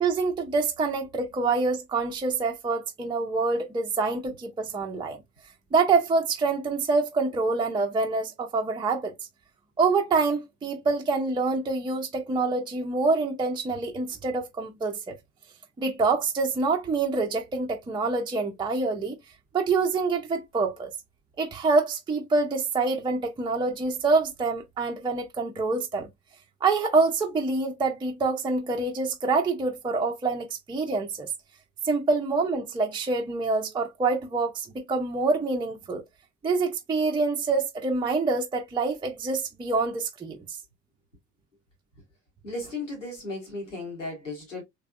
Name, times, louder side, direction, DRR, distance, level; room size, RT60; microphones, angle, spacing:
voice 1, 0.0-5.2 5.7-9.1 9.8-15.1 15.8-19.2 19.5-20.9 21.4-26.1 26.6-31.3 31.8-36.0 36.4-40.4, right 3 dB, 15° right, 0.5 m, -26 dB
voice 2, 42.4-44.6, left 2 dB, 85° left, 1.3 m, -35 dB
3.3 x 3.3 x 2.2 m
figure-of-eight pair, 55°, 36 cm